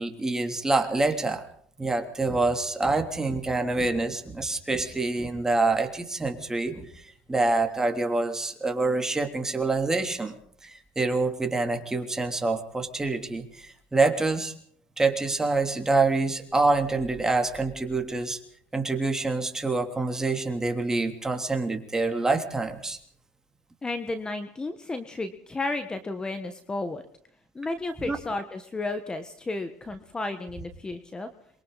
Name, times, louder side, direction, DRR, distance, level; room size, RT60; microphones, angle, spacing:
voice 1, 0.0-1.5 1.8-7.0 7.3-10.4 10.6-14.5 15.0-18.4 18.7-23.0 28.0-28.2, right 3 dB, 10° right, 4 dB, 3.2 m, -26 dB
voice 2, 23.8-27.0 27.5-31.3, left 2 dB, 20° left, 9 dB, 1.5 m, -33 dB
27.0 x 23.0 x 4.2 m, 0.62 s
supercardioid pair, 100°, 4 cm